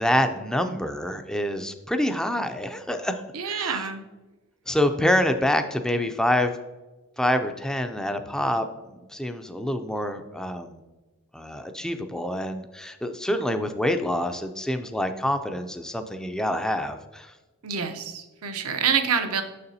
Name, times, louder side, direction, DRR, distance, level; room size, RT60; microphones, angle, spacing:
voice 1, 0.0-3.8 4.7-6.5 7.2-10.9 11.3-17.3, left 1 dB, 5° left, 7 dB, 0.4 m, -26 dB
voice 2, 3.3-4.0 17.6-19.4, right 6 dB, 80° right, 7 dB, 0.8 m, -26 dB
6.7 x 6.5 x 2.7 m, 1.1 s
head